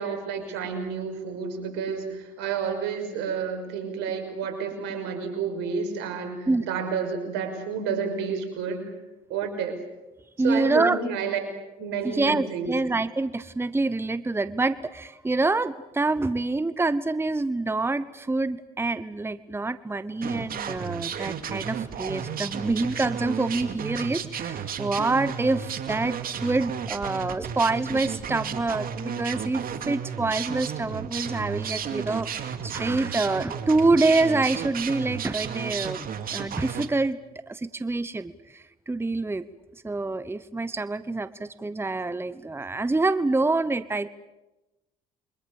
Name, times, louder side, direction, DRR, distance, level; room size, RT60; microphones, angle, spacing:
voice 1, 0.0-8.9 9.3-9.8 10.4-11.4 11.8-12.7, right 6 dB, 80° right, 6 dB, 6.0 m, -30 dB
voice 2, 10.4-11.0 12.0-36.0 36.3-37.2 37.5-39.5 39.8-44.1, right 3 dB, 15° right, 15 dB, 1.0 m, -26 dB
sound 1, 20.2-36.9, right 7 dB, 55° right, 2.4 m, -33 dB
28.0 x 24.5 x 7.1 m, 1.0 s
hypercardioid pair, 65°, 18 cm